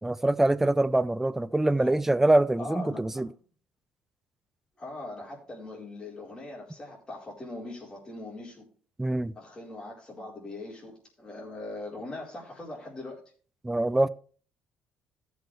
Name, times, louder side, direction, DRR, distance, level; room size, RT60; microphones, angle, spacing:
voice 1, 0.0-3.3 9.0-9.3 13.6-14.1, right 2 dB, 10° right, 0.5 m, -24 dB
voice 2, 2.6-3.3 4.8-8.7 9.4-13.2, left 2 dB, 25° left, 4.4 m, -41 dB
14.0 x 6.4 x 3.3 m
cardioid pair, 105°, 3 cm